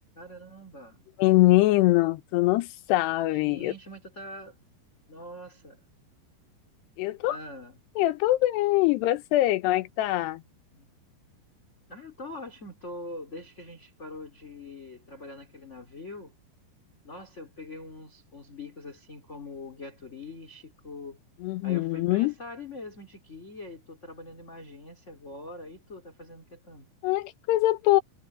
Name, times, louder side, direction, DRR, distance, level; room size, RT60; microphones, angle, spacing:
voice 1, 0.1-1.0 3.3-4.6 5.1-5.8 7.3-7.8 10.7-10.9 11.9-16.3 17.0-21.2 21.6-26.9, left 2 dB, 20° left, 3.4 m, -43 dB
voice 2, 1.2-3.7 7.0-7.4 8.0-10.4 21.4-22.3 27.0-28.0, left 17 dB, 90° left, 3.1 m, -23 dB
omnidirectional pair, 4.7 m